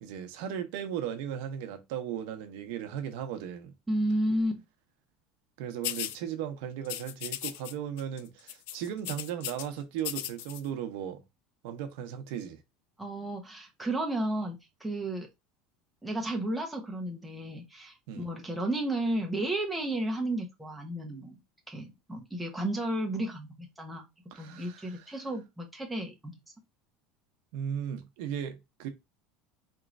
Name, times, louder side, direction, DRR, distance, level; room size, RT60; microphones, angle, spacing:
voice 1, 0.0-3.7 5.6-11.2 11.6-12.6 18.1-18.3 24.3-25.2 27.5-28.9, right 9 dB, 65° right, 0.7 m, -36 dB
voice 2, 3.9-4.6 13.0-15.3 16.0-21.3 21.7-24.1 24.4-26.3, right 1 dB, 5° right, 0.6 m, -32 dB
sound 1, 5.8-6.2 6.8-7.7 8.0-8.2 8.5-9.7 10.0-10.6, left 13 dB, 70° left, 0.3 m, -36 dB
4.3 x 3.0 x 2.5 m
cardioid pair, 175°, 0 cm